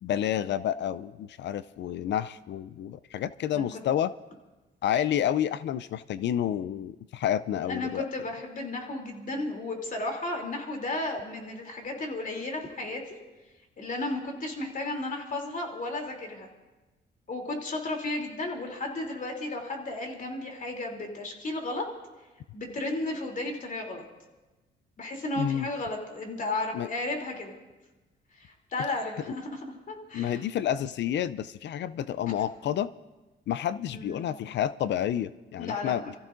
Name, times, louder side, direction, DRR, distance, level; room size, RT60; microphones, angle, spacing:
voice 1, 0.0-4.1 4.8-8.0 25.4-25.7 26.7-26.9 29.3-29.4 30.1-32.9 33.5-36.0, left 10 dB, 65° left, 16 dB, 0.4 m, -29 dB
voice 2, 7.7-13.2 13.8-16.5 17.3-21.8 22.5-24.0 25.0-27.5 28.4-30.4 33.9-34.2 35.6-36.2, left 2 dB, 45° left, 2 dB, 3.0 m, -34 dB
28.0 x 14.5 x 2.6 m, 1.1 s
cardioid pair, 90°, 20 cm